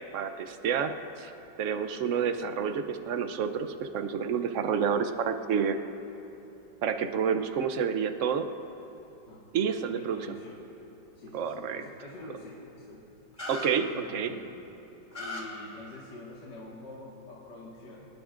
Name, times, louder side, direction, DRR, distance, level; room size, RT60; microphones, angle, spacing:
voice 1, 0.1-1.3 1.6-5.8 6.8-8.5 9.5-10.2 11.3-11.8 13.5-14.3, right 7 dB, 60° right, 8 dB, 0.8 m, -29 dB
voice 2, 10.0-10.6 11.1-13.0 13.9-14.8 15.2-18.1, left 2 dB, 65° left, -6 dB, 2.4 m, -46 dB
sound 1, 13.4-13.7 15.1-15.4, left 2 dB, 15° left, 2.7 m, -36 dB
25.5 x 18.5 x 2.5 m, 3.0 s
omnidirectional pair, 2.1 m